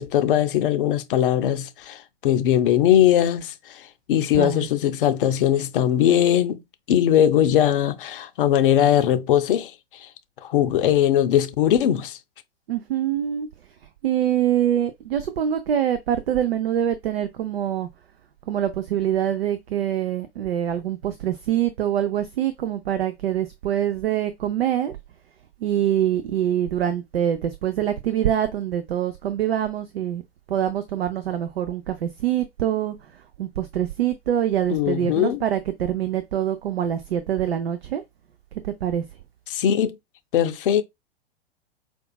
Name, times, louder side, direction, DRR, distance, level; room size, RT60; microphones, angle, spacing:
voice 1, 0.0-6.6 6.9-9.7 10.0-10.1 10.4-12.2 34.7-35.4 39.5-40.0 40.3-40.8, left 10 dB, 55° left, 0.6 m, -20 dB
voice 2, 4.3-4.7 12.7-13.5 14.0-17.9 18.5-24.9 25.6-30.2 30.5-33.0 33.4-38.0 38.6-39.0, right 10 dB, 70° right, 0.5 m, -24 dB
5.0 x 2.4 x 2.2 m
figure-of-eight pair, 95°, 32 cm